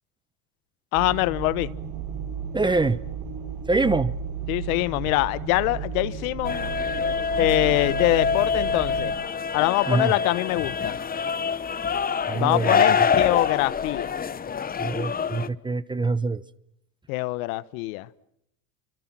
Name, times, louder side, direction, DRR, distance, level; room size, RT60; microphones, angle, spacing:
voice 1, 0.9-1.7 4.5-6.7 7.4-9.1 9.5-11.0 12.3-14.2 17.1-18.1, left 19 dB, 75° left, 1.2 m, -24 dB
sound 1, 0.9-9.1, right 7 dB, 60° right, 6.3 m, -34 dB
voice 2, 2.5-3.0 3.7-4.1 9.9-10.1 12.3-13.1 14.8-16.4, right 3 dB, 10° right, 0.9 m, -25 dB
sound 2, 6.4-15.5, left 6 dB, 20° left, 1.0 m, -25 dB
29.0 x 26.0 x 6.1 m
supercardioid pair, 100°, 42 cm